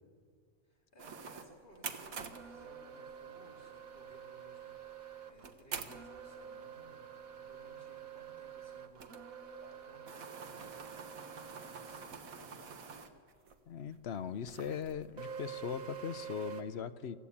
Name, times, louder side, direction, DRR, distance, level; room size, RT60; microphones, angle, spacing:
voice 1, 0.6-9.1 9.6-12.9, equal, 35° left, -2 dB, 4.4 m, -61 dB
sound 1, 1.0-13.6 13.9-14.0 14.5-16.6, right 7 dB, 80° right, 1.7 m, -46 dB
voice 2, 13.7-17.2, left 8 dB, 55° left, 13 dB, 1.0 m, -39 dB
26.0 x 15.0 x 8.6 m, 2.1 s
omnidirectional pair, 1.4 m